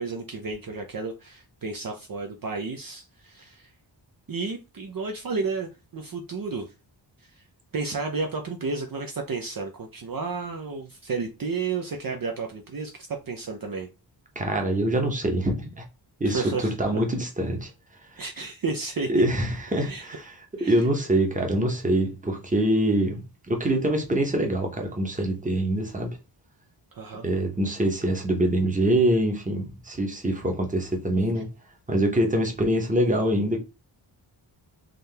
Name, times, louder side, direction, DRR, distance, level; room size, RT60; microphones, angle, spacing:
voice 1, 0.0-3.7 4.3-6.7 7.7-13.9 16.3-17.0 18.2-19.2 19.8-20.0 20.6-20.8 26.9-27.2, right 4 dB, 50° right, 0.6 m, -32 dB
voice 2, 14.3-15.8 16.2-17.7 18.1-18.2 19.1-26.1 27.2-31.5 31.9-33.6, right 1 dB, 15° right, 0.9 m, -24 dB
3.8 x 2.8 x 3.3 m
wide cardioid pair, 110°, 46 cm